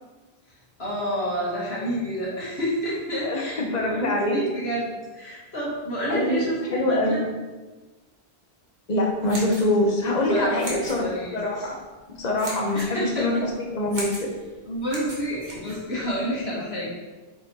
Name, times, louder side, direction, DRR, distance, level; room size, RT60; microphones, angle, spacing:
voice 1, 0.8-7.2 10.3-11.7 12.7-13.3 14.7-17.0, equal, 75° left, -6 dB, 2.5 m, -29 dB
voice 2, 3.2-4.5 6.1-7.3 8.9-11.1 11.3-11.8 12.1-14.3, left 1 dB, 40° left, -1 dB, 1.3 m, -24 dB
sound 1, 9.1-16.4, right 1 dB, 45° right, 2.1 m, -40 dB
7.4 x 5.2 x 4.8 m, 1.3 s
omnidirectional pair, 1.1 m